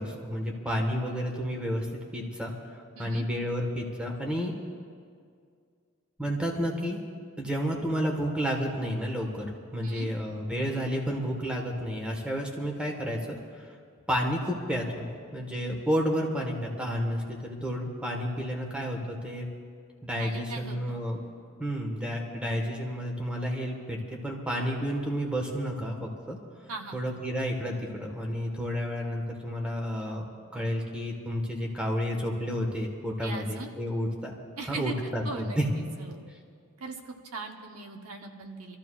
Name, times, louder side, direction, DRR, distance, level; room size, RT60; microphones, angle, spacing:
voice 1, 0.0-1.8 2.1-2.5 3.0-4.5 6.2-7.0 7.4-9.5 9.7-13.2 14.1-19.5 20.0-21.2 21.6-26.4 26.9-30.3 30.5-34.3 34.7-35.7, equal, 5° right, 0 dB, 1.6 m, -31 dB
voice 2, 3.0-3.3 9.8-10.1 20.2-21.0 26.7-27.0 33.2-33.7 34.6-34.9 35.2-36.3 36.8-38.8, right 3 dB, 75° right, 3 dB, 1.1 m, -39 dB
27.0 x 14.0 x 2.5 m, 2.1 s
head